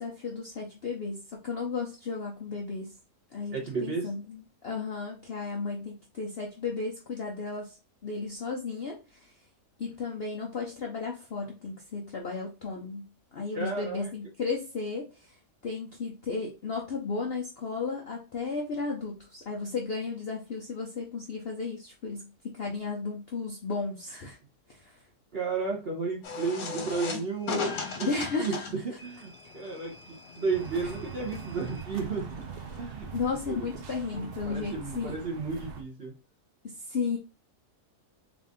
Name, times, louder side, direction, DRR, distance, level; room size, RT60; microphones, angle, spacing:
voice 1, 0.0-2.9 3.3-9.3 9.8-15.4 15.6-24.4 24.7-25.0 28.1-28.6 33.1-35.2 36.6-37.2, left 4 dB, 60° left, 0 dB, 0.6 m, -34 dB
voice 2, 3.5-4.1 13.5-14.1 25.3-28.1 28.4-32.5 32.8-33.1 33.5-33.6 34.1-36.1, right 4 dB, 45° right, 0 dB, 1.0 m, -33 dB
sound 1, 26.2-32.8, left 4 dB, 80° left, 1.5 m, -38 dB
sound 2, 30.5-35.8, right 6 dB, 80° right, 0.5 m, -42 dB
3.6 x 2.6 x 3.6 m, 0.31 s
omnidirectional pair, 1.8 m